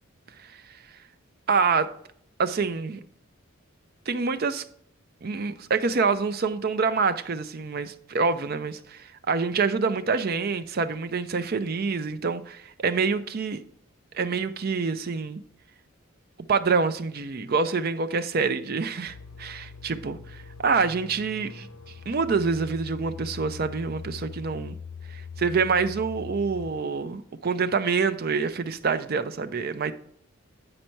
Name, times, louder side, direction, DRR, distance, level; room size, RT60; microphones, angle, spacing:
voice 1, 1.5-1.9 2.4-3.0 4.1-4.6 5.2-13.6 14.1-15.4 16.5-21.7 22.1-24.8 25.1-29.9, right 5 dB, 45° right, 0.5 m, -26 dB
sound 1, 19.1-26.7, left 6 dB, 90° left, 0.7 m, -41 dB
8.8 x 5.3 x 4.5 m
head